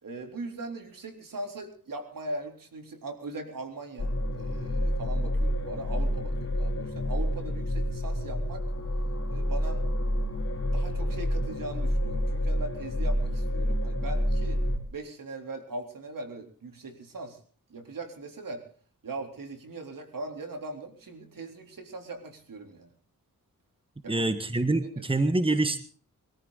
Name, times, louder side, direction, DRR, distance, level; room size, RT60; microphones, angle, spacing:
voice 1, 0.0-8.6 9.3-9.8 10.7-14.6 14.9-17.4 17.7-18.6 19.0-22.9 24.0-24.3 25.0-25.2, right 2 dB, 70° right, 5 dB, 3.8 m, -40 dB
sound 1, 4.0-14.8, equal, 45° left, 3.6 m, -28 dB
voice 2, 24.1-25.8, right 2 dB, 15° right, 10 dB, 1.6 m, -26 dB
22.5 x 14.0 x 4.1 m, 0.41 s
cardioid pair, 65°, 34 cm